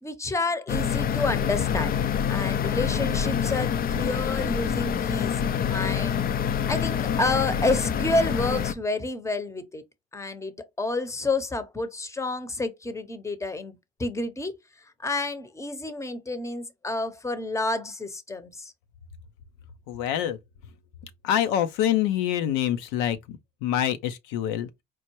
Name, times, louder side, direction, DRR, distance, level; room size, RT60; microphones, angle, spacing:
voice 1, 0.0-1.9 2.3-5.3 5.7-6.2 6.7-9.8 10.1-14.5 15.0-18.7, left 2 dB, 10° left, 0.7 m, -29 dB
sound 1, 0.7-8.7, left 8 dB, 30° left, 0.4 m, -26 dB
voice 2, 19.9-20.4 21.2-24.7, left 11 dB, 80° left, 0.6 m, -26 dB
4.5 x 2.1 x 3.0 m
hypercardioid pair, 70°, 30 cm